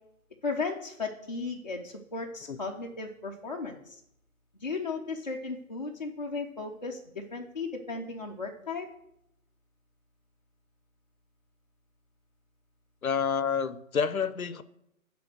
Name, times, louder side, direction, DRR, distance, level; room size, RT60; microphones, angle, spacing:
voice 1, 0.4-4.0 4.6-8.9, left 4 dB, 30° left, -2 dB, 0.6 m, -35 dB
voice 2, 13.0-14.6, left 6 dB, 75° left, 14 dB, 0.7 m, -28 dB
9.8 x 3.4 x 6.2 m, 0.78 s
figure-of-eight pair, 145°, 43 cm